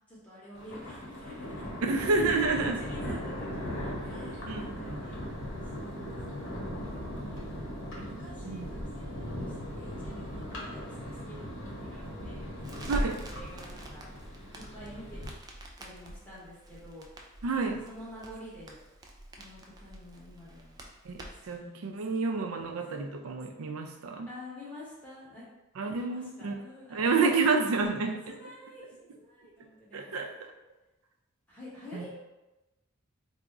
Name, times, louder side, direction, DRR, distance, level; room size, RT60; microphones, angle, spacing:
voice 1, 0.1-1.6 2.0-5.2 5.8-7.6 8.0-11.5 11.8-14.0 14.5-15.2 15.8-17.0 17.8-18.8 19.3-20.8 21.3-22.0 22.6-22.8 24.3-25.4 25.8-27.4 28.0-30.2 31.5-32.2, left 1 dB, 5° left, -9 dB, 1.1 m, -49 dB
Thunder, 0.5-15.3, equal, 65° left, 1.0 m, -39 dB
voice 2, 1.8-2.8 4.5-4.7 8.0-8.1 8.4-8.7 12.9-13.2 17.4-17.8 21.0-24.3 25.8-26.6 26.9-28.3 29.9-30.5 31.9-32.1, right 4 dB, 90° right, 4 dB, 0.4 m, -29 dB
Crackle, 12.6-21.6, right 1 dB, 20° right, 0.3 m, -43 dB
3.4 x 2.0 x 3.7 m, 1.0 s
head